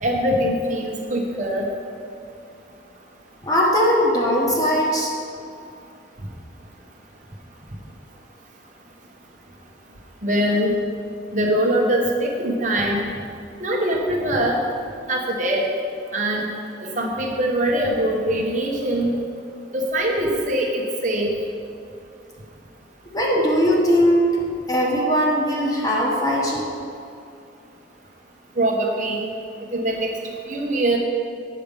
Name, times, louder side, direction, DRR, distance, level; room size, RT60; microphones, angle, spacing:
voice 1, 0.0-1.7 10.2-10.7 11.3-13.0 13.6-14.6 15.1-15.7 16.1-16.5 16.8-19.1 19.7-21.3 28.6-29.3 29.7-30.1 30.5-31.0, right 1 dB, 40° right, 0 dB, 1.0 m, -22 dB
voice 2, 3.4-5.1 23.1-24.4 24.7-26.7, equal, 20° left, -3 dB, 1.3 m, -19 dB
8.6 x 6.6 x 5.2 m, 2.5 s
head